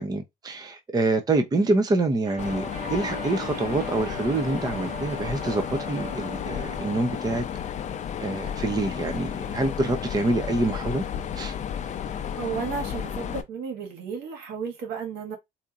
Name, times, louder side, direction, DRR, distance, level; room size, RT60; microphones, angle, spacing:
voice 1, 0.0-7.4 8.2-11.0 11.4-11.5, right 2 dB, 25° right, 0.7 m, -26 dB
sound 1, 2.2-7.4, right 3 dB, 55° right, 1.7 m, -39 dB
Mechanisms, 2.4-13.4, left 8 dB, 45° left, 0.6 m, -33 dB
voice 2, 12.0-15.4, right 6 dB, 80° right, 1.7 m, -33 dB
4.2 x 2.7 x 2.4 m
cardioid pair, 110°, 17 cm